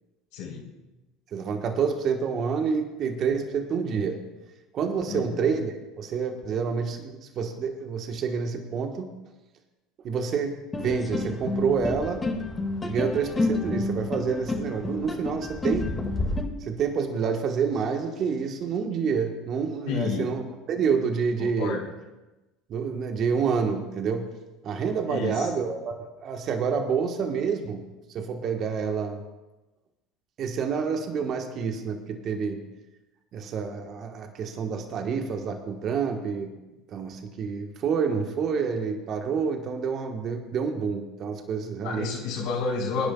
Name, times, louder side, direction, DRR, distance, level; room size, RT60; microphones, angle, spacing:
voice 1, 0.3-0.7 5.1-5.4 19.9-20.3 21.4-21.9 25.1-25.5 41.8-43.1, left 5 dB, 75° left, -8 dB, 3.8 m, -30 dB
voice 2, 1.3-4.2 4.7-9.1 10.0-12.2 12.8-15.9 16.6-21.8 22.7-24.3 24.6-27.8 28.1-29.2 30.4-32.6 33.3-36.5 36.9-42.2, right 6 dB, 50° right, 4 dB, 1.3 m, -28 dB
sound 1, 10.7-16.4, left 2 dB, 20° left, 2.0 m, -29 dB
23.5 x 10.5 x 2.4 m, 1.1 s
hypercardioid pair, 80°, 0 cm